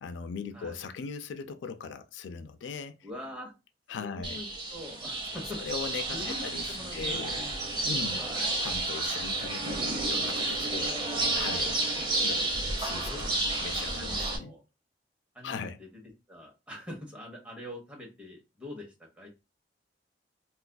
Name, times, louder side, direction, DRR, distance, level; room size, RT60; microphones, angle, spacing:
voice 1, 0.0-3.1 3.9-4.4 5.6-7.4 7.8-8.2 8.6-10.9 11.3-11.7 12.2-12.5 12.8-14.5 15.4-15.8, left 5 dB, 85° left, 0.4 m, -39 dB
voice 2, 3.0-3.5 4.0-5.6 6.1-7.6 8.2-8.6 13.0-14.6 15.3-15.9 16.3-19.3, left 1 dB, 5° right, 1.0 m, -44 dB
sound 1, 4.2-14.4, right 2 dB, 25° right, 0.8 m, -31 dB
4.0 x 2.4 x 2.2 m
head